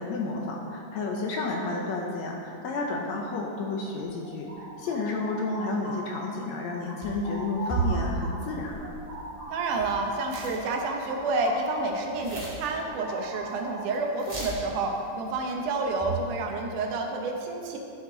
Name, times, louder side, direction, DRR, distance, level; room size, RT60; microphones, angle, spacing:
voice 1, 0.0-8.9, left 3 dB, 70° left, 0 dB, 1.8 m, -31 dB
sound 1, 4.0-6.5 6.8-12.1 12.4-14.1, right 1 dB, 35° right, 2.0 m, -41 dB
sound 2, 7.0-7.3 7.7-10.0 10.3-10.6 10.9-11.4 11.8-13.2 13.4-13.5 13.9-14.0 14.2-14.7 15.9-16.3, right 4 dB, 15° right, 1.6 m, -33 dB
voice 2, 9.5-17.8, right 3 dB, 75° right, 2 dB, 2.4 m, -29 dB
13.0 x 7.2 x 3.9 m, 2.7 s
omnidirectional pair, 3.7 m